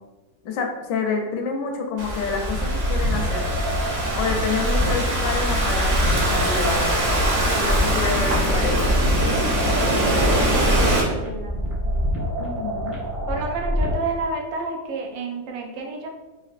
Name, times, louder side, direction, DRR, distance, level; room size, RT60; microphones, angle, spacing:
voice 1, 0.4-3.4 4.2-7.2 7.5-8.9 12.4-13.0, left 4 dB, 75° left, 3 dB, 1.2 m, -28 dB
Thunderstorm / Rain, 2.0-11.0, right 1 dB, 50° right, 0.7 m, -23 dB
sound 1, 2.1-14.1, equal, 15° right, 0.4 m, -26 dB
voice 2, 7.7-8.2 9.6-12.1 13.3-16.1, right 3 dB, 85° right, 1 dB, 1.3 m, -31 dB
4.1 x 2.5 x 2.4 m, 1.1 s
omnidirectional pair, 2.0 m